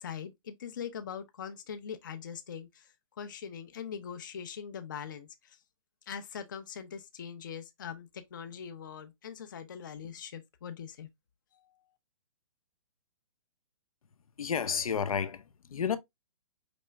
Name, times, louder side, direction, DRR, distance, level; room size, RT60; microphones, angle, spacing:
voice 1, 0.0-5.6 6.1-11.1, left 7 dB, 35° left, 0.6 m, -42 dB
voice 2, 14.4-16.0, left 7 dB, 80° left, 0.8 m, -31 dB
5.1 x 3.2 x 3.2 m
hypercardioid pair, 175°, 18 cm